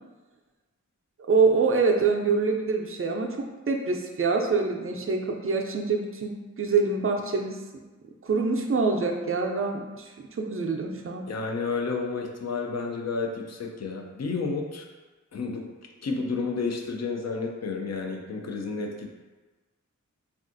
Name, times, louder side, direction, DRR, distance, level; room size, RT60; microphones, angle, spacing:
voice 1, 1.3-3.3 3.7-7.6 8.2-11.2, right 4 dB, 45° right, 2 dB, 0.4 m, -25 dB
voice 2, 11.3-14.8 15.3-15.6 16.0-19.1, left 4 dB, 55° left, 2 dB, 0.4 m, -31 dB
3.4 x 2.3 x 2.5 m, 1.2 s
wide cardioid pair, 55°, 31 cm